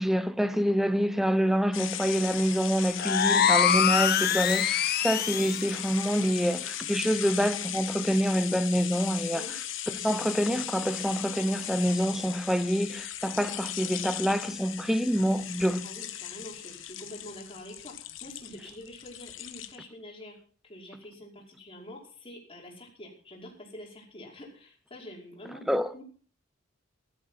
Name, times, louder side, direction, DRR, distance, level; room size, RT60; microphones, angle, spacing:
voice 1, 0.0-9.4 9.9-15.9 25.7-25.9, equal, ahead, 0.9 m, -27 dB
sound 1, 1.7-19.7, left 12 dB, 75° left, 1.3 m, -37 dB
sound 2, 3.0-5.7, left 8 dB, 55° left, 0.9 m, -24 dB
voice 2, 3.1-3.6 9.3-9.7 15.8-20.4 20.6-26.0, left 1 dB, 30° left, 5.3 m, -46 dB
14.5 x 13.0 x 5.9 m
head